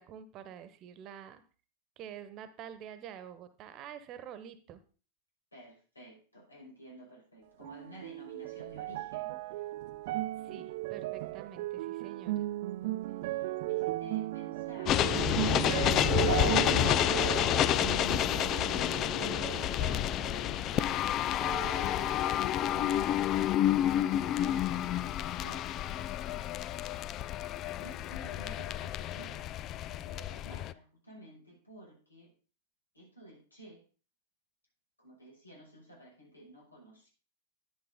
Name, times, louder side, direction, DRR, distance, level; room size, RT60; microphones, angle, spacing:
voice 1, 0.0-1.4 2.0-4.8 10.4-12.4, right 9 dB, 35° right, 12 dB, 1.2 m, -47 dB
voice 2, 5.5-9.6 10.5-10.6 12.8-15.1 17.4-19.6 20.2-26.5 27.8-32.3 32.9-33.8 35.0-37.1, right 1 dB, 80° left, -1 dB, 6.0 m, -53 dB
sound 1, 7.6-21.1 21.4-22.4 23.0-23.1, right 17 dB, 50° right, 0.7 m, -36 dB
sound 2, 14.9-30.7, left 12 dB, 35° left, 0.4 m, -30 dB
11.0 x 10.5 x 3.8 m, 0.37 s
figure-of-eight pair, 90°, 0 cm